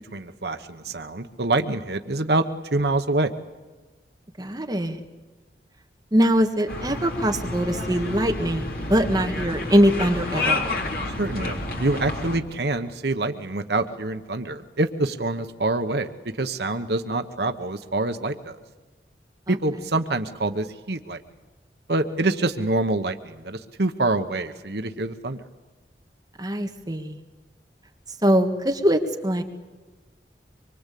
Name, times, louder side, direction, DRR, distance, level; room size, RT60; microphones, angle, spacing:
voice 1, 0.1-2.4 2.7-3.3 11.2-16.1 16.4-18.6 19.5-21.2 21.9-25.4, right 2 dB, 70° right, 7 dB, 1.1 m, -26 dB
voice 2, 4.4-5.0 6.1-10.8 19.5-19.6 26.4-27.2 28.2-29.4, equal, 20° right, 4 dB, 1.7 m, -22 dB
sound 1, 6.7-12.4, left 2 dB, 55° left, 3.5 m, -29 dB
25.0 x 23.5 x 8.4 m, 1.3 s
head